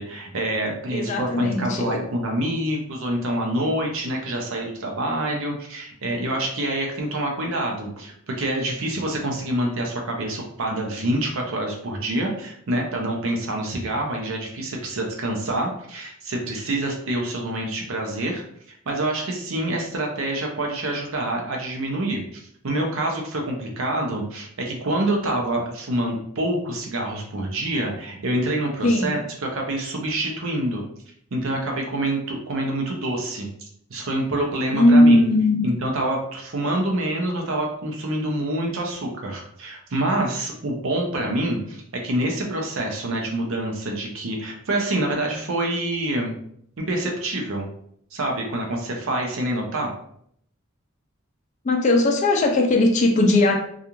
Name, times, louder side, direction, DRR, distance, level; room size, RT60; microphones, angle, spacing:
voice 1, 0.0-18.4 18.9-30.8 31.3-35.2 35.6-46.3 46.9-47.7 48.1-49.9, right 1 dB, 65° right, 1 dB, 0.6 m, -26 dB
voice 2, 0.9-2.0 28.8-29.2 34.7-35.7 51.6-53.5, left 1 dB, 35° left, 2 dB, 0.4 m, -18 dB
2.4 x 2.4 x 2.9 m, 0.67 s
head